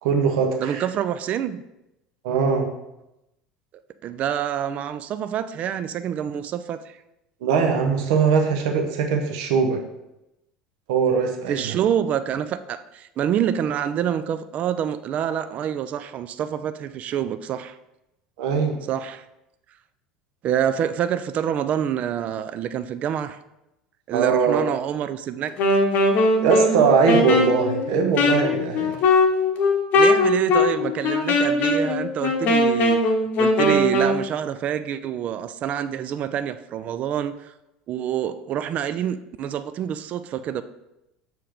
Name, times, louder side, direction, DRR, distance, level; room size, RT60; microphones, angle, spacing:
voice 1, 0.0-0.8 2.2-2.7 7.4-9.8 10.9-11.8 18.4-18.8 24.1-24.6 26.4-29.0, right 5 dB, 60° right, 3 dB, 0.8 m, -21 dB
voice 2, 0.6-1.6 4.0-7.0 11.5-17.8 18.9-19.2 20.4-23.4 24.1-25.8 29.9-33.0 33.4-37.5 37.9-40.6, right 9 dB, 40° right, 12 dB, 0.4 m, -27 dB
Wind instrument woodwind instrument, 25.5-34.2, left 2 dB, 45° left, 0.8 m, -20 dB
6.0 x 4.6 x 3.5 m, 0.91 s
figure-of-eight pair, 70°, 4 cm